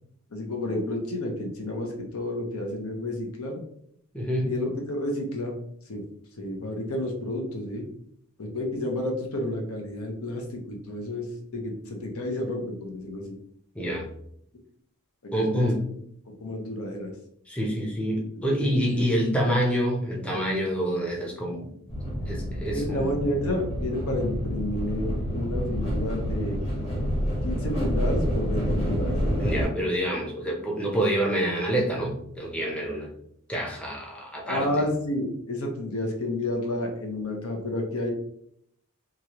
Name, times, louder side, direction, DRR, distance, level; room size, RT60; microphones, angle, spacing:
voice 1, 0.3-3.6 4.4-5.5 5.9-6.0 6.4-7.8 8.4-11.3 11.5-13.3 15.2-15.7 16.4-17.1 18.3-19.1 22.6-26.6 27.4-29.1 34.4-38.1, left 1 dB, 75° left, 2 dB, 0.8 m, -31 dB
voice 2, 4.1-4.5 13.7-14.1 15.3-15.8 17.5-21.7 22.3-23.1 29.4-33.1 33.5-34.7, equal, 5° left, -2 dB, 0.5 m, -27 dB
sound 1, 21.9-29.7, equal, 30° left, 1.0 m, -28 dB
3.0 x 2.4 x 2.9 m, 0.69 s
head